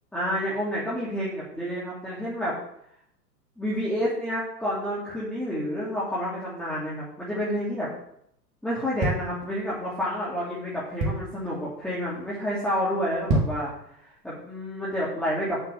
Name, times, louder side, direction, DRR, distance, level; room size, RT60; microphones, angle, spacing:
voice 1, 0.1-2.6 3.6-7.9 8.6-13.7 14.2-15.6, equal, ahead, -9 dB, 3.3 m, -29 dB
heel down on floor hit thud, 8.7-10.0 10.5-10.6 10.7-11.5 11.9-12.2 12.5-12.6 13.1-13.7 14.2-14.3, right 2 dB, 35° right, 3.0 m, -27 dB
8.9 x 6.5 x 7.7 m, 0.72 s
figure-of-eight pair, 105°, 49 cm